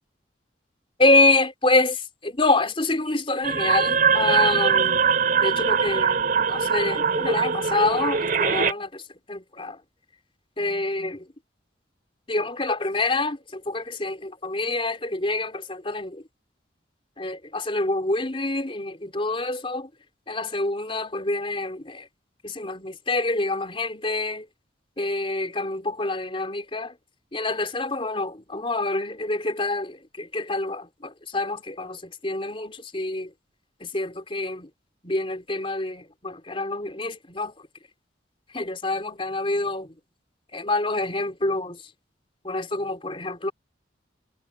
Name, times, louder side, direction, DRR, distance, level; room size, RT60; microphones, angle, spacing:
voice 1, 1.0-5.0 5.4-6.2 6.5-9.0 9.3-9.8 10.6-11.3 12.3-16.2 17.2-19.9 20.3-22.1 22.4-24.5 25.0-26.9 27.3-33.3 33.8-34.7 35.0-37.5 38.5-40.0 40.5-41.8 42.4-43.5, left 2 dB, 30° left, 3.7 m, -26 dB
sound 1, 3.4-8.7, right 6 dB, 50° right, 3.1 m, -22 dB
head